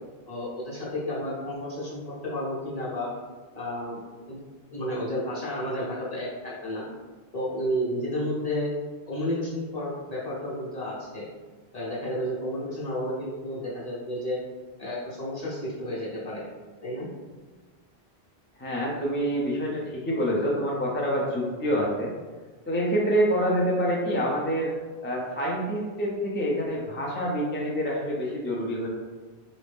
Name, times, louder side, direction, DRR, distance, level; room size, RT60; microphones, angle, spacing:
voice 1, 0.3-3.1 3.5-4.0 4.3-4.4 4.7-6.9 7.3-8.7 9.1-11.3 11.7-14.4 14.8-16.5 16.8-17.1, equal, 35° left, -7 dB, 1.2 m, -31 dB
voice 2, 18.6-22.1 22.7-24.7 25.0-28.9, equal, 20° left, -3 dB, 0.3 m, -26 dB
3.9 x 2.7 x 3.5 m, 1.4 s
omnidirectional pair, 1.1 m